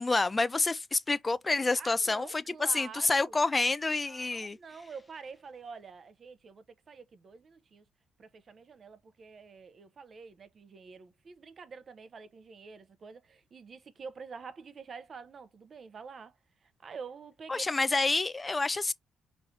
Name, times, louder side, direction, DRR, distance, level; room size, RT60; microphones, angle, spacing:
voice 1, 0.0-2.4 2.7-4.6 17.5-18.9, left 3 dB, 25° left, 0.4 m, -28 dB
voice 2, 1.8-3.4 4.1-7.8 8.2-16.4 16.6-17.7, right 5 dB, 45° right, 0.8 m, -47 dB
4.9 x 3.2 x 2.7 m
cardioid pair, 90°, 0 cm